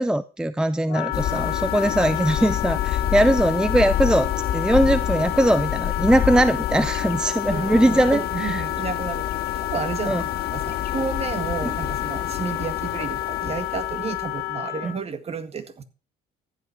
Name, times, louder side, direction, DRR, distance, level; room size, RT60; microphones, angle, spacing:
voice 1, 0.0-8.6 10.1-10.2 11.6-11.7 14.8-14.9, right 1 dB, 5° right, 0.5 m, -21 dB
Wind instrument woodwind instrument, 0.9-15.0, left 17 dB, 85° left, 1.4 m, -30 dB
sound 1, 1.1-14.4, left 10 dB, 65° left, 2.1 m, -29 dB
voice 2, 7.5-15.8, right 5 dB, 35° right, 1.9 m, -31 dB
14.5 x 8.6 x 4.6 m
cardioid pair, 110°, 17 cm